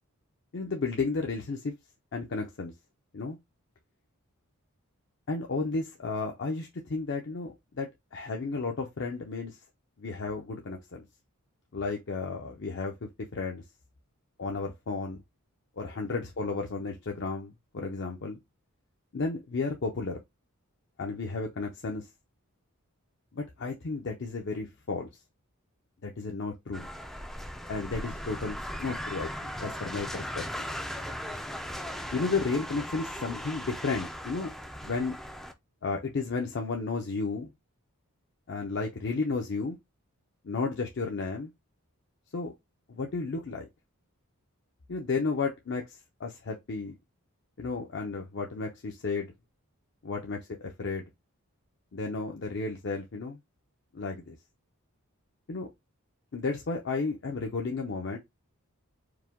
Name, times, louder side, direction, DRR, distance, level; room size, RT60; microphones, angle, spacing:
voice 1, 0.5-1.7 2.1-2.7 3.1-3.4 5.3-9.6 10.0-11.0 11.7-12.9 13.3-13.6 14.4-15.2 15.8-18.4 19.1-20.2 21.0-22.1 23.3-25.1 26.0-26.9 27.7-30.4 32.1-34.5 34.8-35.1 35.8-37.5 38.5-39.8 40.4-41.5 42.3-42.5 42.9-43.6 44.9-46.9 47.6-49.3 50.0-51.0 51.9-53.4 53.9-54.4 55.5-55.7 56.3-58.2, left 4 dB, 55° left, 0.6 m, -33 dB
sound 1, 26.7-35.5, equal, ahead, 0.3 m, -38 dB
4.7 x 2.2 x 3.5 m
head